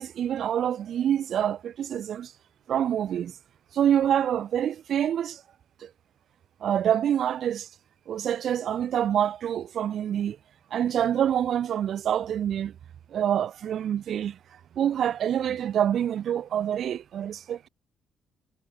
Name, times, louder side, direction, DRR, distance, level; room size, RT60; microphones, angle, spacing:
voice 1, 0.0-2.3 2.7-3.3 3.7-5.4 5.8-5.9 6.6-7.7 8.1-10.4 10.7-12.7 13.1-14.4 14.7-17.6, right 9 dB, 65° right, 1.3 m, -26 dB
cardioid pair, 90°, 0 cm